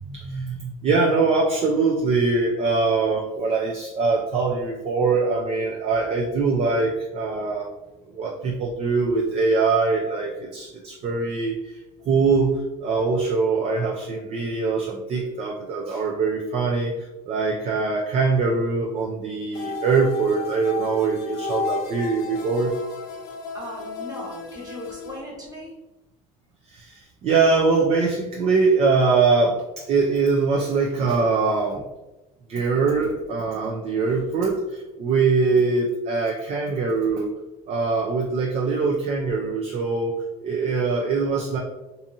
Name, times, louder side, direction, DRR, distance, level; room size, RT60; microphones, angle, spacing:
voice 1, 0.0-7.7 8.1-11.7 12.0-16.9 17.3-22.7 26.7-31.8 32.5-37.3 37.7-41.6, right 4 dB, 45° right, 0 dB, 0.4 m, -23 dB
sound 1, 19.5-25.2, left 4 dB, 85° left, 0.5 m, -33 dB
voice 2, 23.5-25.7, equal, 25° right, -3 dB, 1.1 m, -37 dB
2.6 x 2.5 x 2.7 m, 1.0 s
cardioid pair, 115°, 16 cm